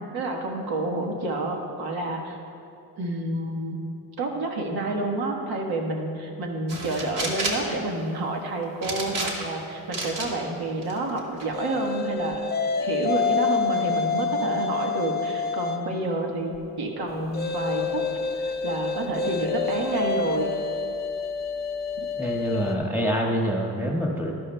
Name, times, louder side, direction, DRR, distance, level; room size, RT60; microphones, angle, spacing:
voice 1, 0.1-2.4 3.0-3.8 4.2-20.5, right 2 dB, 80° right, 1 dB, 1.4 m, -29 dB
sound 1, 6.7-7.7 8.8-9.6 9.9-10.3 10.8-11.5, right 2 dB, 60° right, 1.6 m, -30 dB
sound 2, 11.5-15.9 17.3-22.8, left 5 dB, 25° left, 0.6 m, -28 dB
voice 2, 22.2-24.3, equal, 5° right, -1 dB, 1.4 m, -26 dB
12.5 x 11.5 x 2.2 m, 2.7 s
cardioid pair, 115°, 37 cm